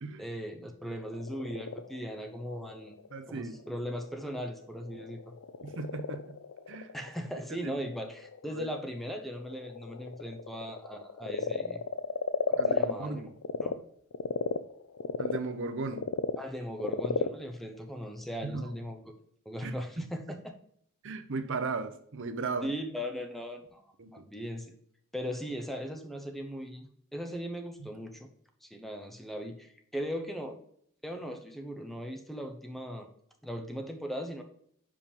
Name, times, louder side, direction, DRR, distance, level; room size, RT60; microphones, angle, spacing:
voice 1, 0.2-2.9 3.3-5.3 6.9-11.8 12.5-13.3 13.6-13.8 16.4-19.1 19.5-20.6 22.6-23.8 24.1-24.7 25.1-28.3 28.6-30.6 31.0-33.1 33.4-34.4, equal, ahead, 0.7 m, -38 dB
Frog, 0.9-13.7 14.1-18.8, left 6 dB, 70° left, 0.5 m, -35 dB
voice 2, 3.1-3.6 5.6-6.4 6.7-6.9 7.6-7.8 8.5-8.7 12.6-13.3 15.2-16.0 18.4-18.7 19.6-19.7 21.0-22.7 24.0-24.2 27.8-27.9, right 4 dB, 60° right, 0.7 m, -36 dB
5.2 x 5.1 x 5.2 m
head